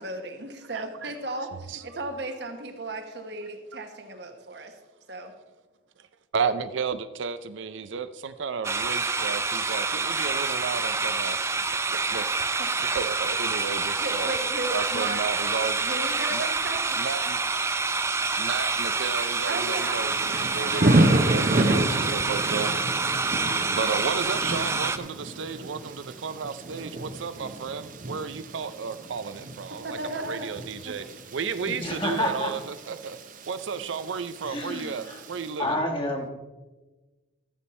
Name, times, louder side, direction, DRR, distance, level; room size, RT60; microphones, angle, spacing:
voice 1, 0.0-4.7 5.1-5.3 12.6-12.7 14.0-15.2 15.8-17.0 19.5-20.1 20.6-21.5 29.8-30.5 30.8-30.9, right 2 dB, 60° right, 5 dB, 1.3 m, -35 dB
voice 2, 0.7-1.1 1.5-1.8 6.0-6.1 6.3-11.6 12.1-12.2 12.9-14.3 14.7-15.9 16.3-16.5 17.0-17.4 18.4-22.7 23.7-31.0 31.3-33.2 33.4-35.8, right 5 dB, 75° right, 12 dB, 0.5 m, -33 dB
sound 1, 8.6-25.0, right 4 dB, 15° right, 0.4 m, -27 dB
Thunder / Rain, 18.7-35.5, right 1 dB, 45° right, 0.8 m, -30 dB
voice 3, 31.7-32.5 34.5-35.2 35.6-36.3, left 1 dB, 25° left, 1 dB, 1.5 m, -29 dB
14.0 x 7.3 x 4.3 m, 1.2 s
head